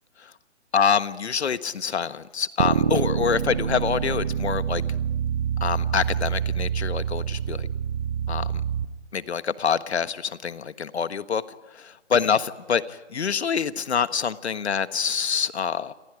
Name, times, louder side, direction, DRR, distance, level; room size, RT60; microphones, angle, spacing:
voice 1, 0.7-4.8 5.6-7.7 8.3-8.5 9.1-11.4 11.7-15.9, left 7 dB, 60° left, 13 dB, 1.5 m, -26 dB
sound 1, 2.6-8.9, right 8 dB, 20° right, 0.7 m, -26 dB
29.0 x 27.5 x 5.1 m, 1.2 s
hypercardioid pair, 155°, 36 cm